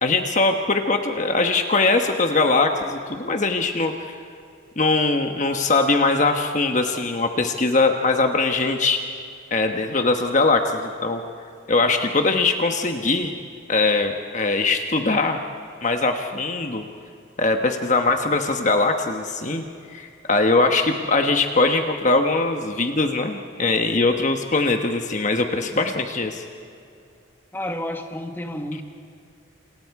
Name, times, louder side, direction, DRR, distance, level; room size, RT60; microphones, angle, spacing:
voice 1, 0.0-4.1 4.8-9.0 9.5-11.2 11.7-13.3 13.7-15.4 15.8-16.8 17.4-19.6 19.9-26.4, left 3 dB, 35° left, 5 dB, 1.2 m, -21 dB
voice 2, 27.5-28.8, left 1 dB, 10° left, 4 dB, 1.5 m, -30 dB
28.0 x 27.5 x 4.8 m, 2.5 s
head